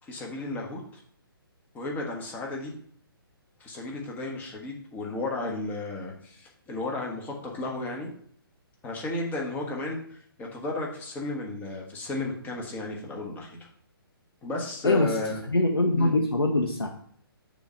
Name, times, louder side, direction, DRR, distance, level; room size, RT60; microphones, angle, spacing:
voice 1, 0.0-1.0 1.7-2.7 3.6-8.1 8.8-13.5 14.4-15.4 16.0-16.1, left 2 dB, 15° left, -1 dB, 1.3 m, -34 dB
voice 2, 15.5-16.9, left 2 dB, 90° left, 2 dB, 0.9 m, -23 dB
6.9 x 3.1 x 5.5 m, 0.62 s
figure-of-eight pair, 140°, 13 cm